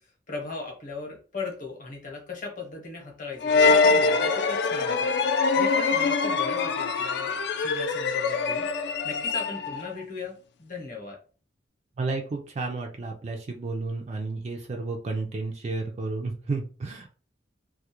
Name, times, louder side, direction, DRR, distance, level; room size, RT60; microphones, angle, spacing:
voice 1, 0.3-5.1 5.6-8.7 9.0-11.2, left 4 dB, 45° left, 0 dB, 0.8 m, -38 dB
sound 1, 3.4-9.9, left 4 dB, 60° left, 0.3 m, -24 dB
voice 2, 12.0-17.1, right 3 dB, 35° right, 3 dB, 0.3 m, -32 dB
2.3 x 2.0 x 2.8 m, 0.37 s
head